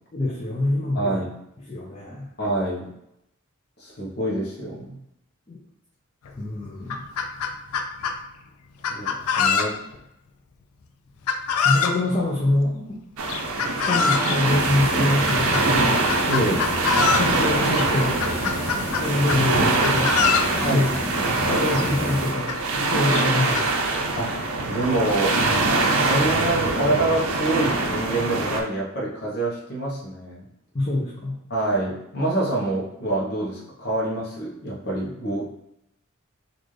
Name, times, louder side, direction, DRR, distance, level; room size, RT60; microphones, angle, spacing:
voice 1, 0.1-1.2 1.7-2.3 5.5-5.6 6.4-7.1 11.6-13.0 13.6-16.6 17.2-18.2 19.0-20.2 20.5-20.9 21.4-22.5 22.9-23.9 30.7-31.4, left 2 dB, 30° left, -5 dB, 0.6 m, -25 dB
voice 2, 0.9-1.3 2.4-2.9 3.8-5.0 8.9-9.8 16.3-16.6 20.6-21.0 24.2-24.4 24.6-25.4 25.8-30.4 31.5-35.5, right 2 dB, 50° left, -5 dB, 1.0 m, -26 dB
Chicken rooster, 6.3-6.4 6.7-8.2 8.8-10.0 11.3-12.0 13.3-14.4 15.3-15.6 16.1-17.3 17.7-17.9 18.2-19.5 19.8-20.5 21.4-21.5 21.7-21.8 22.5-22.6 23.1-23.7, left 6 dB, 90° left, 0.4 m, -24 dB
sound 1, 13.2-28.6, right 3 dB, 85° right, 0.6 m, -23 dB
sound 2, 14.4-22.3, equal, 10° left, 1.4 m, -32 dB
4.0 x 2.5 x 3.2 m, 0.80 s
head